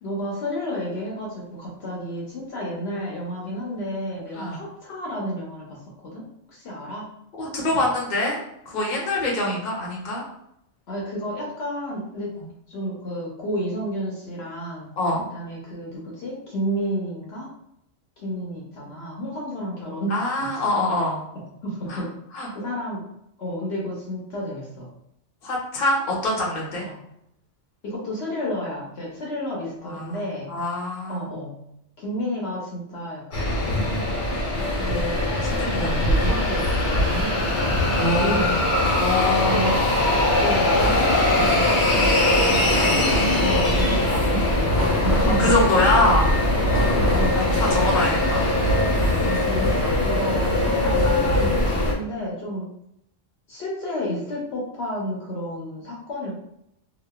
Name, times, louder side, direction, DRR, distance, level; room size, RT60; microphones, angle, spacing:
voice 1, 0.0-7.1 7.4-7.9 10.9-12.3 12.7-14.9 15.3-17.5 18.2-20.2 20.4-20.5 21.3-22.1 22.5-23.0 23.4-24.9 26.8-27.0 27.8-30.5 31.1-31.6 32.0-33.8 34.7-35.3 35.7-36.7 37.0-37.7 38.0-38.7 39.5-39.9 40.4-42.8 43.2-45.6 46.9-47.7 49.2-52.7 53.5-56.4, equal, 70° left, -3 dB, 0.9 m, -31 dB
voice 2, 7.4-8.4 8.7-10.2 12.4-12.5 15.0-15.3 20.1-21.2 21.9-22.0 22.3-22.5 25.4-26.8 29.9-31.2 35.4-36.0 36.3-36.4 38.0-38.6 39.0-39.8 42.8-43.1 45.4-46.3 46.8-47.0 47.6-48.5 49.8-49.9, left 2 dB, 50° left, -3 dB, 0.8 m, -24 dB
sound 1, 33.3-51.9, left 1 dB, 85° left, 1.1 m, -21 dB
2.8 x 2.2 x 2.2 m, 0.79 s
omnidirectional pair, 1.2 m